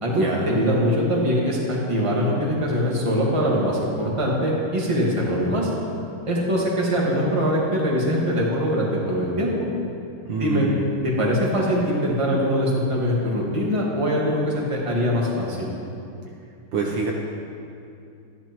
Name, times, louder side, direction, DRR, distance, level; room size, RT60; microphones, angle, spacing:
voice 1, 0.0-5.7 6.3-9.5 10.4-10.7 11.0-15.7, equal, 15° right, -4 dB, 1.4 m, -22 dB
voice 2, 10.2-10.8 16.7-17.1, right 4 dB, 70° right, 0 dB, 1.4 m, -26 dB
12.5 x 11.0 x 3.0 m, 2.5 s
omnidirectional pair, 2.4 m